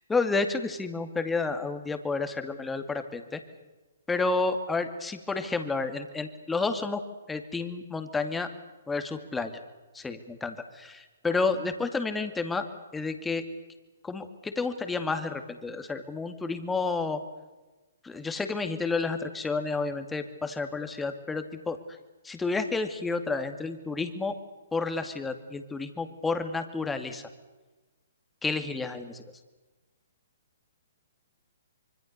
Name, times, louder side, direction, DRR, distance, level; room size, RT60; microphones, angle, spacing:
voice 1, 0.0-3.4 4.1-7.0 7.3-8.5 8.9-9.5 9.9-12.7 12.9-13.4 14.0-17.2 18.0-21.8 22.2-24.3 24.7-27.2 28.4-29.2, left 3 dB, 10° left, 7 dB, 2.4 m, -30 dB
25.5 x 25.0 x 6.8 m, 1.2 s
figure-of-eight pair, 130°, 0 cm